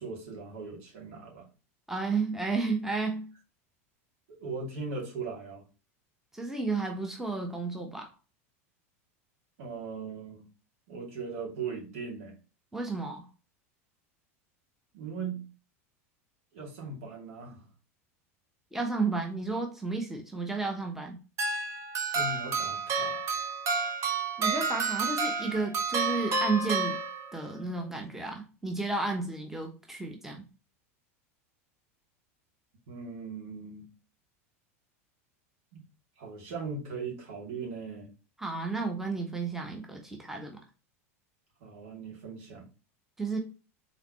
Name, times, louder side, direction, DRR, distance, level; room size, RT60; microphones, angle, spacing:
voice 1, 0.0-1.5 4.4-5.6 9.6-10.5 10.9-12.3 14.9-15.5 16.5-17.6 22.1-23.2 32.9-33.9 35.7-35.8 36.2-38.1 41.6-42.7, right 4 dB, 70° right, 0 dB, 2.4 m, -39 dB
voice 2, 1.9-3.3 6.3-8.1 12.7-13.3 18.7-21.2 24.4-27.0 27.3-30.4 38.4-40.6 43.2-43.4, right 3 dB, 5° right, 2 dB, 1.1 m, -32 dB
sound 1, 21.4-27.5, right 4 dB, 40° right, 1.1 m, -30 dB
4.0 x 4.0 x 3.0 m, 0.32 s
hypercardioid pair, 100°, 8 cm